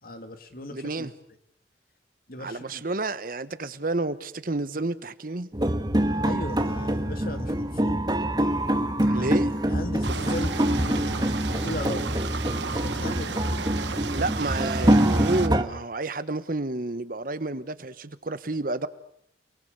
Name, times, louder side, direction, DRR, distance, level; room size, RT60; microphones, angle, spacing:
voice 1, 0.0-1.1 2.3-2.9 6.2-8.0 9.1-12.2 12.7-13.4, left 1 dB, 55° left, 2.7 m, -37 dB
voice 2, 0.7-1.1 2.4-5.5 9.0-9.7 14.1-18.9, right 2 dB, 50° right, 1.2 m, -30 dB
sound 1, 5.5-15.6, right 1 dB, 25° right, 1.5 m, -25 dB
sound 2, 10.0-15.5, right 5 dB, 85° right, 1.2 m, -34 dB
29.5 x 20.5 x 8.1 m
head